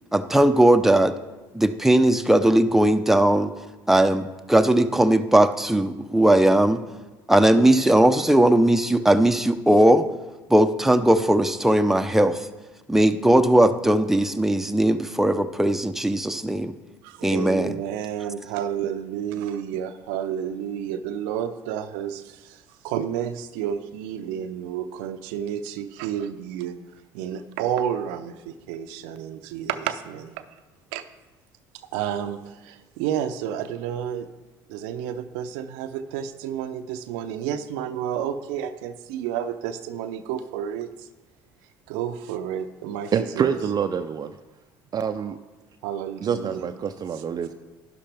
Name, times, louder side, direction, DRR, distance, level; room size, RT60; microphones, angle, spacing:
voice 1, 0.1-1.1 1.5-3.5 3.9-6.8 7.3-10.1 10.5-12.4 12.9-16.7 17.2-17.7, right 1 dB, 5° right, 7 dB, 0.7 m, -18 dB
voice 2, 17.0-26.8 27.1-30.4 30.9-31.0 31.9-34.3 34.7-41.1 41.9-43.6 45.8-46.7, right 9 dB, 80° right, 9 dB, 0.6 m, -30 dB
voice 3, 43.1-44.4 44.9-45.4 46.2-47.5, right 7 dB, 40° right, 7 dB, 0.5 m, -26 dB
11.5 x 11.0 x 3.5 m, 1.2 s
hypercardioid pair, 70°, 10 cm